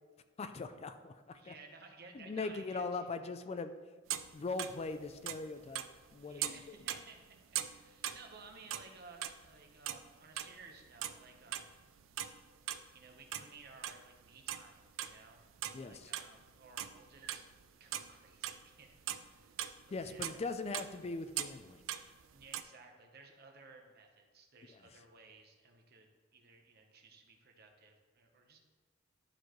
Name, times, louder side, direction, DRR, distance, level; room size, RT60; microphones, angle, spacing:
voice 1, 0.4-1.5 2.1-3.7 4.3-5.8 6.1-6.7 15.7-16.1 19.9-21.8, left 3 dB, 30° left, 10 dB, 0.3 m, -40 dB
voice 2, 1.3-3.1 6.2-7.2 7.7-11.7 12.9-15.4 15.8-17.5 17.8-19.5 19.9-20.5 22.3-28.6, right 4 dB, 55° right, 3 dB, 1.0 m, -57 dB
sound 1, 4.1-4.8 5.0-6.1 6.4-8.9 9.2-10.1 10.4-12.8 13.1-14.0 14.4-16.5 16.7-17.6 17.9-22.6, right 11 dB, 85° right, 0.4 m, -40 dB
11.5 x 4.5 x 3.1 m, 1.4 s
head